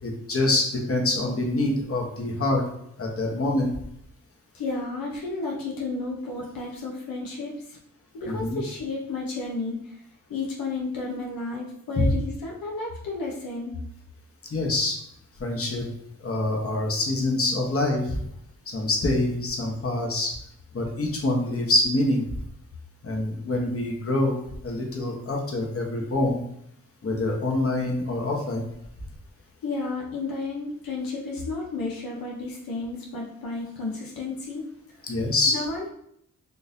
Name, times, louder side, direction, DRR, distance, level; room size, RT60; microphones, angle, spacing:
voice 1, 0.0-2.6 3.0-3.7 8.3-8.6 12.0-12.1 14.5-15.0 15.4-15.9 16.2-18.2 18.7-20.3 20.7-22.2 23.0-24.4 24.6-26.4 27.0-28.6 35.1-35.6, left 2 dB, 40° left, 0 dB, 1.0 m, -25 dB
voice 2, 4.5-7.8 8.1-10.0 10.3-13.8 29.6-34.6 35.5-35.9, left 3 dB, 80° left, -2 dB, 0.7 m, -32 dB
3.8 x 2.6 x 2.6 m, 0.72 s
cardioid pair, 60°, 34 cm